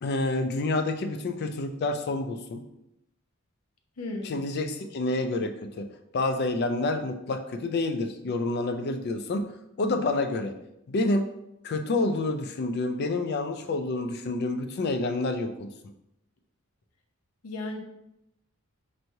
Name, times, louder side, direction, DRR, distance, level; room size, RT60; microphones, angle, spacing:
voice 1, 0.0-2.6 4.2-5.9 6.1-9.5 9.8-10.5 10.9-11.3 11.6-15.7, left 2 dB, 45° left, 7 dB, 0.3 m, -28 dB
voice 2, 4.0-4.4 17.4-17.8, left 2 dB, 85° left, 3 dB, 0.7 m, -35 dB
4.5 x 3.1 x 2.6 m, 0.84 s
head